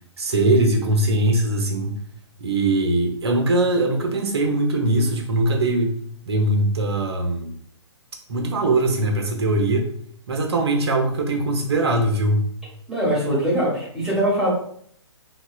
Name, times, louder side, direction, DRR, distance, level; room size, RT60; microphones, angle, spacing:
voice 1, 0.2-1.9 2.4-6.0 6.3-7.5 8.3-9.9 10.3-12.5, right 2 dB, 65° right, 3 dB, 0.8 m, -21 dB
voice 2, 12.9-14.5, right 1 dB, 5° right, -7 dB, 1.3 m, -22 dB
3.9 x 2.2 x 2.4 m, 0.63 s
figure-of-eight pair, 125°, 15 cm